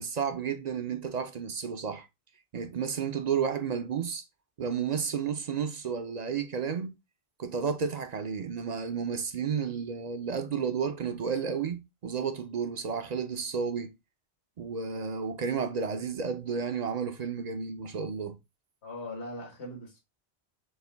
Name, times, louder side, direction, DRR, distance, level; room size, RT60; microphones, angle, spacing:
voice 1, 0.0-2.1 2.5-4.2 4.6-6.9 7.4-13.9 14.6-18.4, right 6 dB, 50° right, 0.6 m, -32 dB
voice 2, 18.8-20.0, left 1 dB, 80° left, 1.7 m, -40 dB
6.5 x 2.2 x 3.3 m
omnidirectional pair, 1.1 m